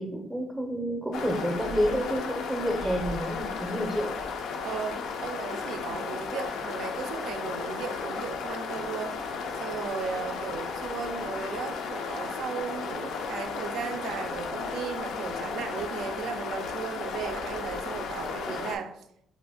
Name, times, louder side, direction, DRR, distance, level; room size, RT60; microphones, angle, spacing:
voice 1, 0.0-4.3, equal, 5° right, 1 dB, 0.5 m, -29 dB
sound 1, 1.1-18.8, left 5 dB, 80° left, 0.3 m, -34 dB
voice 2, 4.6-9.2 9.6-19.0, right 6 dB, 80° right, 8 dB, 0.3 m, -36 dB
2.5 x 2.4 x 3.4 m, 0.75 s
cardioid pair, 90°, 0 cm